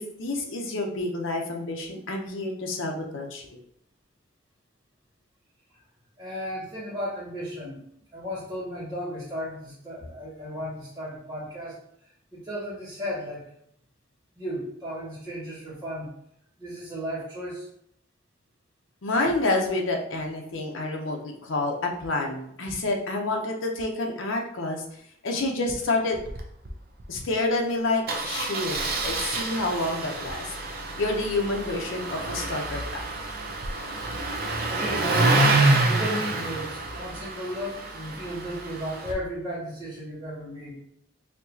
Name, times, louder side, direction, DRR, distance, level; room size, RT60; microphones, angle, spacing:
voice 1, 0.0-3.5 19.0-24.8 25.2-26.2 27.1-30.5 31.0-33.0, left 2 dB, 80° left, 2 dB, 0.8 m, -28 dB
voice 2, 6.2-7.8 8.1-11.8 12.3-13.4 14.3-16.1 16.6-17.7 34.7-35.6 35.9-40.8, equal, 20° right, -13 dB, 1.5 m, -34 dB
Engine starting, 26.1-26.4 26.6-26.7 27.0-27.2 28.1-39.1, right 2 dB, 50° right, 0.6 m, -27 dB
4.4 x 2.9 x 2.7 m, 0.71 s
head